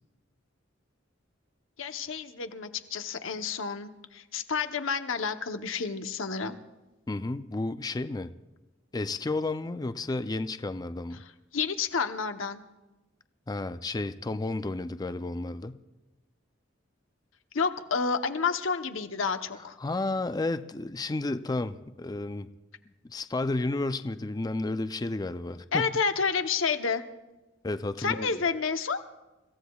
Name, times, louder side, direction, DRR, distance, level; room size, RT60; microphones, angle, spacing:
voice 1, 1.8-6.6 11.5-12.6 17.5-19.8 25.7-27.0 28.0-29.0, left 5 dB, 85° left, 8 dB, 0.9 m, -30 dB
voice 2, 7.1-8.3 8.9-11.2 13.5-15.8 19.8-22.5 23.0-25.9 27.6-28.4, left 2 dB, 20° left, 11 dB, 0.4 m, -32 dB
30.0 x 16.0 x 2.3 m, 1.1 s
head